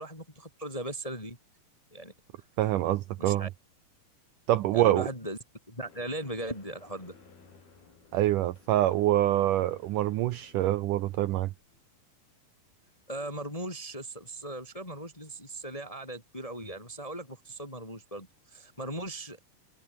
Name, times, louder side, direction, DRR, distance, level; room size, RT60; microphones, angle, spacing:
voice 1, 0.0-1.4 1.9-2.1 3.2-3.5 4.7-5.4 5.7-7.2 13.1-19.4, right 1 dB, 10° left, 3.8 m, -38 dB
voice 2, 2.6-3.5 4.5-5.1 8.1-11.5, right 14 dB, 85° right, 1.9 m, -25 dB
sound 1, 5.8-11.9, left 4 dB, 65° left, 8.3 m, -58 dB
omnidirectional pair, 4.7 m